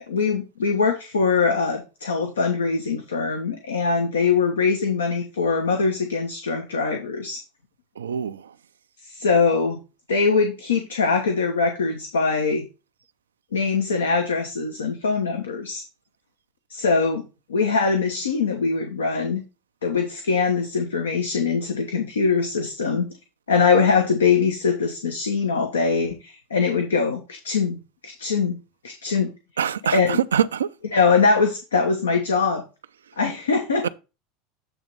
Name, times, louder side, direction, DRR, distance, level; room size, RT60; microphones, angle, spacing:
voice 1, 0.1-7.4 9.0-9.8 10.1-12.7 13.5-15.8 16.7-17.2 17.5-19.4 19.8-23.1 23.5-28.6 28.8-29.3 29.9-30.2 30.9-32.6 33.2-33.9, left 4 dB, 90° left, 0.9 m, -22 dB
voice 2, 8.0-8.4 29.6-30.0 30.3-30.7 33.8-33.9, right 8 dB, 90° right, 0.4 m, -23 dB
8.1 x 3.1 x 5.2 m
hypercardioid pair, 90°, 0 cm